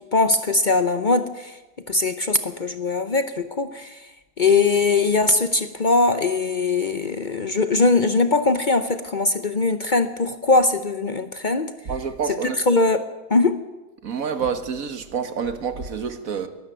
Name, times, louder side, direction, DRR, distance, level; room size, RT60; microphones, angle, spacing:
voice 1, 0.0-1.6 1.9-4.1 4.4-11.7 12.3-13.6, left 3 dB, 65° left, 0.4 m, -21 dB
voice 2, 11.9-12.6 14.0-16.5, right 6 dB, 45° right, 1.6 m, -27 dB
22.0 x 13.0 x 9.0 m
omnidirectional pair, 2.2 m